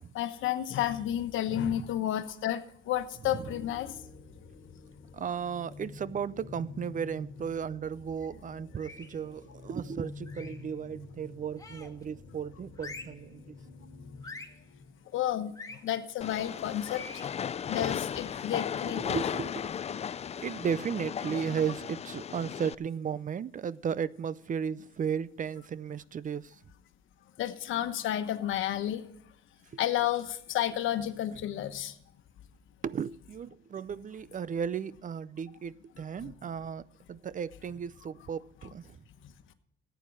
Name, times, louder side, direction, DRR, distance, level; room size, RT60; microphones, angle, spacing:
voice 1, 0.1-3.9 15.1-15.5 15.8-17.0 17.7-19.2 27.4-29.0 29.8-31.9 36.2-36.3, left 12 dB, 80° left, 1.2 m, -31 dB
voice 2, 1.5-1.9 3.3-3.5 5.1-13.5 18.9-19.7 20.4-26.6 32.8-39.0, right 7 dB, 40° right, 0.5 m, -35 dB
sound 1, 3.2-15.2, left 4 dB, 50° left, 2.5 m, -49 dB
sound 2, 8.7-9.2 10.3-10.7 11.6-12.0 12.8-13.2 14.2-14.6 15.5-15.8 16.8-17.3, left 3 dB, 15° left, 1.9 m, -45 dB
Train, 16.2-22.7, left 8 dB, 35° left, 0.4 m, -36 dB
14.5 x 9.2 x 4.7 m
cardioid pair, 90°, 20 cm